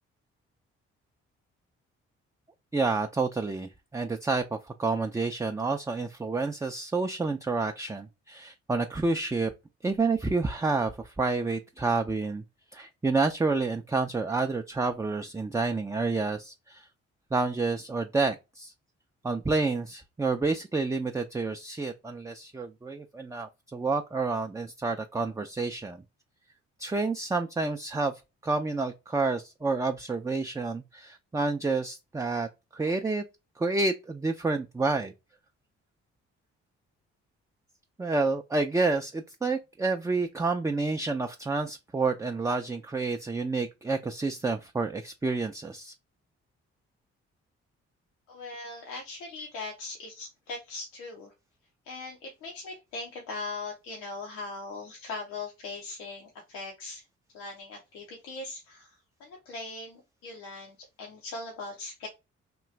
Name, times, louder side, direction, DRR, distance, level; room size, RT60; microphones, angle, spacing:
voice 1, 2.7-9.5 9.8-12.4 12.7-16.9 17.3-18.7 19.2-26.0 26.8-33.2 33.6-35.1 38.0-45.9, right 3 dB, 10° right, 0.4 m, -29 dB
voice 2, 48.3-51.3 51.9-57.0 57.3-62.1, left 3 dB, 90° left, 0.8 m, -40 dB
3.0 x 2.3 x 3.3 m
supercardioid pair, 50°, 30 cm